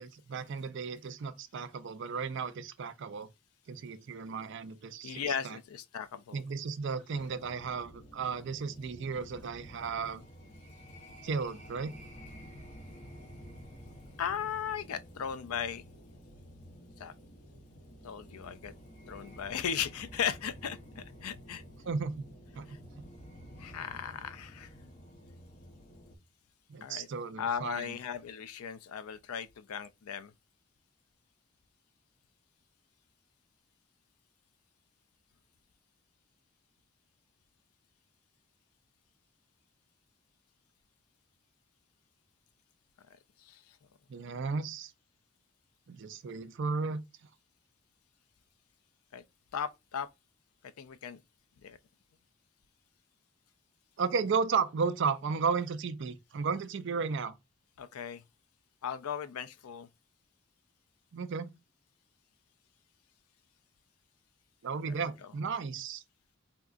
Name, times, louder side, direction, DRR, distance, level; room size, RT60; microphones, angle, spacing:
voice 1, 0.0-3.3 3.7-5.2 5.4-5.6 6.3-10.2 11.2-11.9 21.9-22.2 22.6-22.8 26.7-27.9 44.1-44.9 45.9-47.0 54.0-57.3 61.1-61.5 64.6-66.0, right 5 dB, 55° right, 0.4 m, -34 dB
voice 2, 5.0-6.4 14.2-15.8 17.0-17.1 18.0-18.7 19.1-21.6 22.7-22.8 23.6-24.7 26.8-27.1 27.4-30.3 43.4-43.8 49.1-49.2 49.5-50.1 50.6-51.2 51.6-51.8 57.8-58.2 58.8-59.9 64.8-65.3, left 8 dB, 90° left, 0.4 m, -37 dB
sound 1, 7.1-26.2, equal, 35° left, 0.9 m, -51 dB
3.6 x 2.8 x 2.4 m
head